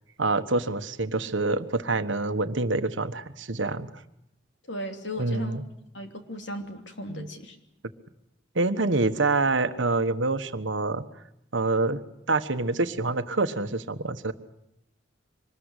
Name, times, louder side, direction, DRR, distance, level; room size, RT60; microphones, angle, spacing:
voice 1, 0.2-3.9 5.2-5.6 7.1-7.3 8.5-11.0 11.5-12.0 12.3-14.3, right 3 dB, 75° right, 10 dB, 1.3 m, -26 dB
voice 2, 4.7-5.6 5.9-7.6, left 1 dB, 70° left, 5 dB, 3.1 m, -36 dB
25.0 x 20.5 x 8.3 m, 0.78 s
head